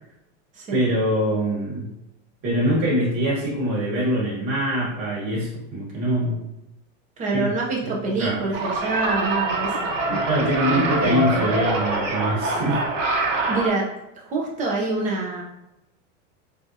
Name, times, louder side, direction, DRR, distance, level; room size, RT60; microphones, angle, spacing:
voice 1, 0.7-1.9 2.4-6.5 7.3-7.5 7.8-7.9 8.2-8.4 10.3-12.8, equal, 35° right, -6 dB, 1.3 m, -23 dB
voice 2, 7.2-10.3 13.5-13.9 14.2-15.4, right 3 dB, 20° right, -2 dB, 0.6 m, -26 dB
sound 1, 8.5-13.7, right 2 dB, 90° right, 0.9 m, -24 dB
3.5 x 2.5 x 2.7 m, 0.90 s
supercardioid pair, 150°, 37 cm